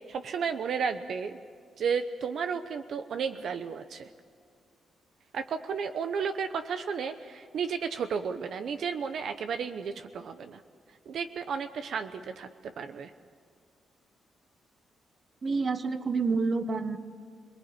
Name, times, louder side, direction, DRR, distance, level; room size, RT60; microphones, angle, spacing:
voice 1, 0.1-1.4 1.8-4.1 5.3-10.6 11.1-13.1, right 6 dB, 65° right, 8 dB, 0.9 m, -33 dB
voice 2, 15.4-17.0, right 4 dB, 35° right, 10 dB, 1.2 m, -28 dB
26.5 x 20.0 x 8.4 m, 2.1 s
cardioid pair, 130°, 0 cm